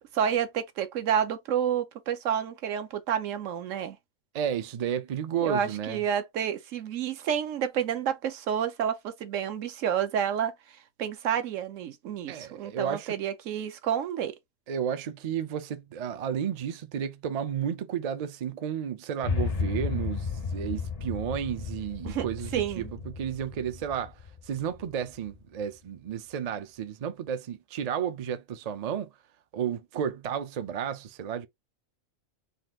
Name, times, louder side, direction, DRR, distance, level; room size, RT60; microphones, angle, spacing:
voice 1, 0.1-4.0 5.4-10.5 11.0-14.3 22.0-22.2 22.5-22.9, right 8 dB, 80° right, 1.1 m, -29 dB
voice 2, 4.3-6.0 12.3-13.2 14.7-29.1 29.5-31.5, right 8 dB, 60° right, 0.4 m, -32 dB
sound 1, 19.2-25.4, left 5 dB, 50° left, 0.4 m, -34 dB
4.0 x 2.4 x 3.6 m
omnidirectional pair, 1.3 m